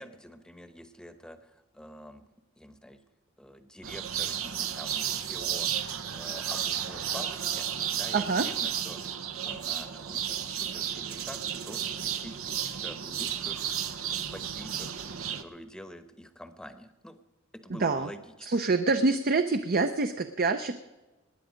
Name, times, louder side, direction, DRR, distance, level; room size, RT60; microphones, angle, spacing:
voice 1, 0.0-2.3 2.6-3.0 3.4-5.9 6.1-13.6 14.1-15.0 15.3-17.2 17.5-18.5, equal, 5° left, 10 dB, 0.9 m, -47 dB
sound 1, 3.8-15.4, right 9 dB, 85° right, 0.8 m, -33 dB
voice 2, 8.1-8.5 17.8-18.1 18.4-20.8, right 3 dB, 45° right, 8 dB, 0.6 m, -26 dB
19.5 x 10.0 x 5.1 m, 1.1 s
head